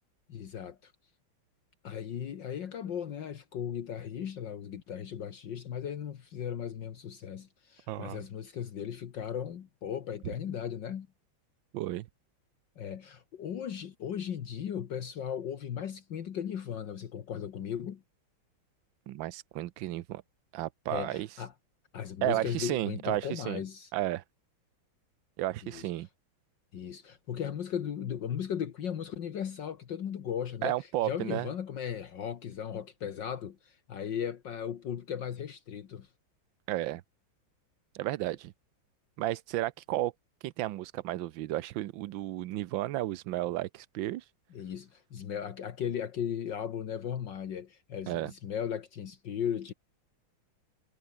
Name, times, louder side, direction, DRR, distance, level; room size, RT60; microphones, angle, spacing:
voice 1, 0.3-0.9 1.8-11.1 12.8-18.0 20.9-21.5 21.9-23.9 25.6-25.9 26.7-36.1 44.5-49.7, left 8 dB, 65° left, 1.9 m, -37 dB
voice 2, 7.9-8.2 11.7-12.1 19.1-20.2 20.5-21.3 22.2-23.6 23.9-24.2 25.4-26.1 30.6-31.5 36.7-37.0 37.9-38.5 39.2-40.1 40.4-44.2 48.1-48.3, right 15 dB, 75° right, 1.4 m, -33 dB
omnidirectional pair, 2.2 m